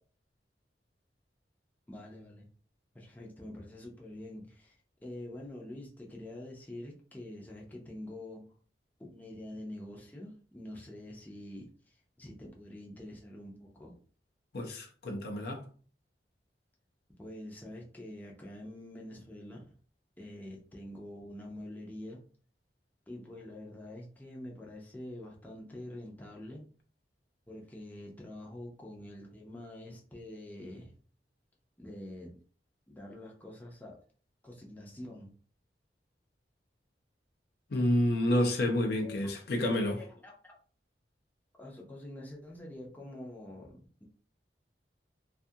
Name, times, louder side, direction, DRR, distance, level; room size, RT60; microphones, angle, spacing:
voice 1, 1.9-2.5 2.9-4.8 5.0-8.5 9.0-14.0 17.2-19.7 20.2-22.2 23.1-26.7 27.5-30.9 31.8-32.4 32.9-34.0 34.4-35.3 39.0-39.5 39.9-40.6 41.6-44.0, left 1 dB, 10° left, 0.6 m, -46 dB
voice 2, 14.5-15.6 37.7-40.0, left 1 dB, 65° left, 0.5 m, -29 dB
2.6 x 2.4 x 2.7 m
head